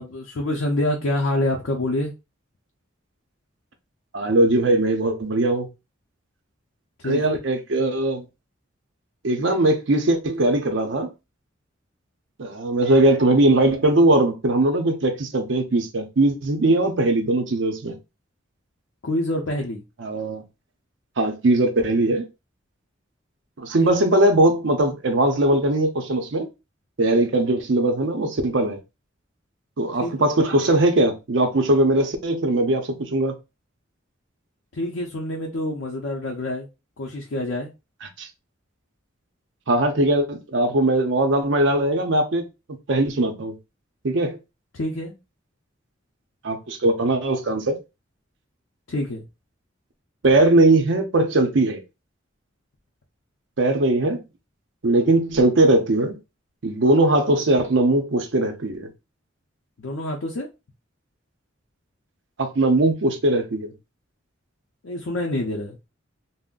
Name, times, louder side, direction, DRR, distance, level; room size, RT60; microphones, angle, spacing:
voice 1, 0.0-2.1 7.0-7.2 19.0-19.8 23.8-23.9 30.0-30.3 34.7-36.7 37.0-37.7 44.7-45.1 48.9-49.3 59.8-60.5 64.8-65.8, left 1 dB, 70° left, 0.5 m, -26 dB
voice 2, 4.1-5.7 7.0-8.2 9.2-11.1 12.4-17.9 20.0-20.4 21.2-22.3 23.6-26.5 27.0-28.8 29.8-33.3 38.2-38.3 39.7-42.4 42.9-43.5 44.0-44.4 46.4-47.8 50.2-51.8 53.6-54.2 54.8-56.2 56.6-58.9 62.4-63.7, right 2 dB, 65° right, 0.6 m, -20 dB
2.5 x 2.0 x 3.7 m
head